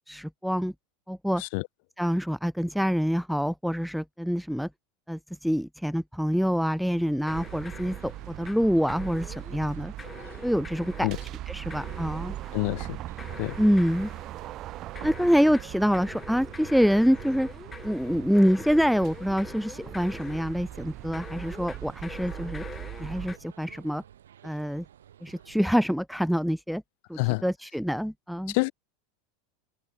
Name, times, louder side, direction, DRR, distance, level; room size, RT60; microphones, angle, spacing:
voice 1, 0.1-0.7 1.1-1.4 2.0-4.7 5.1-9.9 10.4-11.1 11.5-12.3 13.6-14.1 15.0-17.5 17.8-22.6 23.0-24.0 24.4-24.8 25.2-26.8 27.1-28.5, equal, ahead, 0.7 m, -26 dB
sound 1, 6.9-26.0, right 10 dB, 80° right, 5.4 m, -52 dB
sound 2, 7.3-8.6 8.9-9.6 10.0-11.3 11.7-12.7 13.2-14.3 15.0-20.6 21.1-23.4, left 5 dB, 20° left, 6.8 m, -44 dB
sound 3, 7.3-23.3, right 14 dB, 45° right, 1.1 m, -40 dB
voice 2, 12.5-13.0 13.4-13.6 27.2-27.4 28.5-28.7, left 30 dB, 60° left, 1.4 m, -27 dB
hypercardioid pair, 90°, 0 cm